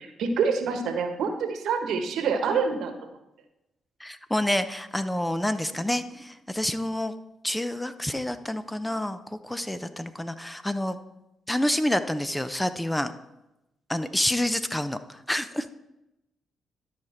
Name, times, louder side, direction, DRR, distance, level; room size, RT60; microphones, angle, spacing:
voice 1, 0.0-2.9 14.0-14.1, right 5 dB, 75° right, 6 dB, 1.1 m, -26 dB
voice 2, 4.0-7.1 7.4-11.0 11.5-13.1 13.9-15.7, left 1 dB, 10° left, 12 dB, 0.6 m, -28 dB
12.5 x 5.1 x 4.4 m, 0.93 s
hypercardioid pair, 50°, 0 cm